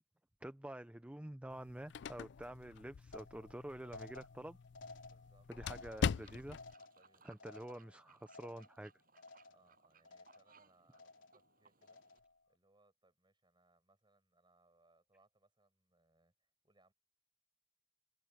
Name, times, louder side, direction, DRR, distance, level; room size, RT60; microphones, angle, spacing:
voice 1, 0.4-4.6 5.5-6.6 7.2-8.9, right 1 dB, 5° right, 0.5 m, -48 dB
sound 1, 1.5-6.7, left 6 dB, 65° left, 0.4 m, -42 dB
sound 2, 3.1-8.9 9.2-9.7 10.0-10.6 10.9-11.5 11.8-12.4, left 3 dB, 85° left, 3.3 m, -56 dB
voice 2, 5.1-6.1 6.9-8.4 9.4-16.9, right 2 dB, 25° right, 7.0 m, -73 dB
Fowl / Bird, 6.0-12.2, right 5 dB, 50° right, 7.7 m, -68 dB
head